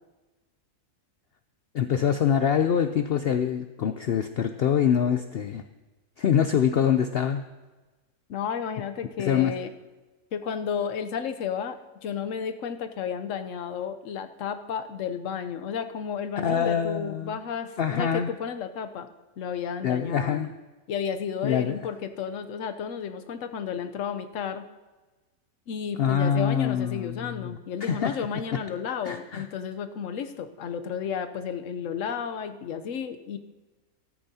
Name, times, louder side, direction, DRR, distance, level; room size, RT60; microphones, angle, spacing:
voice 1, 1.7-5.6 6.2-7.4 9.2-9.5 16.4-17.4 17.8-18.3 19.8-20.5 21.4-21.8 26.0-27.5 27.8-28.2 29.0-29.5, left 8 dB, 80° left, 9 dB, 0.5 m, -25 dB
voice 2, 8.3-9.7 10.3-19.1 19.4-20.4 20.9-24.6 25.7-33.4, left 7 dB, 65° left, 8 dB, 1.0 m, -32 dB
13.5 x 13.5 x 2.8 m, 1.2 s
omnidirectional pair, 1.6 m